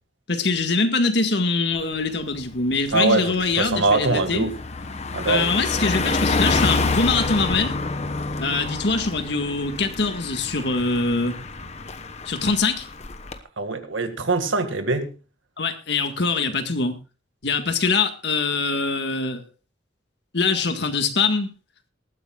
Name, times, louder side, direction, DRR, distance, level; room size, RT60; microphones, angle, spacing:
voice 1, 0.3-4.5 5.3-7.8 8.4-11.4 12.3-12.9 15.6-17.0 17.4-19.4 20.3-21.5, left 4 dB, 60° left, 1.8 m, -23 dB
Car passing by, 1.8-2.0 2.4-13.4, left 3 dB, 35° left, 1.1 m, -28 dB
voice 2, 2.9-4.6 5.1-5.5 13.6-15.1, right 3 dB, 80° right, 1.9 m, -23 dB
19.5 x 13.5 x 2.4 m
head